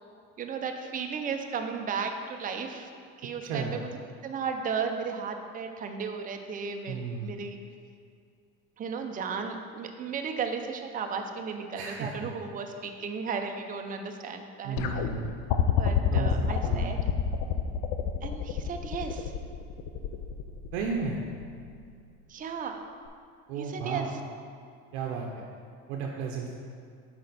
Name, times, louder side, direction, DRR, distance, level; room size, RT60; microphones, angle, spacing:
voice 1, 0.4-2.9 3.2-3.9 4.2-7.6 8.8-15.1 15.8-17.0 18.2-19.3 22.3-22.9 23.6-24.1, right 5 dB, 25° right, 4 dB, 0.5 m, -35 dB
voice 2, 3.4-3.8 6.9-7.3 11.7-12.1 14.6-15.3 16.1-16.3 16.6-17.0 20.7-21.2 23.5-24.1 24.9-25.4 25.9-26.6, right 5 dB, 80° right, 0 dB, 0.7 m, -33 dB
sound 1, 14.8-21.9 23.1-23.2, left 8 dB, 60° left, 0.6 m, -29 dB
6.4 x 4.3 x 4.0 m, 2.3 s
supercardioid pair, 95°, 32 cm